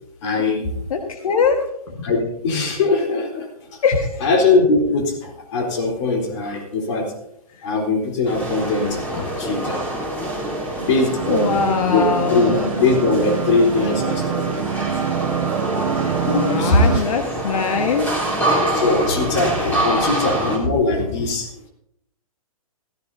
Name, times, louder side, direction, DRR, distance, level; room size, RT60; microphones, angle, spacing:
voice 1, 0.2-0.7 2.0-3.8 4.2-7.2 7.6-9.9 10.7-14.8 16.0-17.0 18.7-21.5, left 3 dB, 55° left, 1 dB, 3.8 m, -21 dB
voice 2, 0.9-1.6 3.8-4.1 9.1-9.3 11.3-12.7 16.3-18.1 19.8-20.2, left 5 dB, 70° left, 4 dB, 1.6 m, -22 dB
sound 1, 8.2-20.6, right 1 dB, 10° left, 3.7 m, -26 dB
sound 2, 11.2-17.0, right 10 dB, 70° right, 0.9 m, -26 dB
16.0 x 15.5 x 2.8 m, 0.78 s
hypercardioid pair, 135°, 19 cm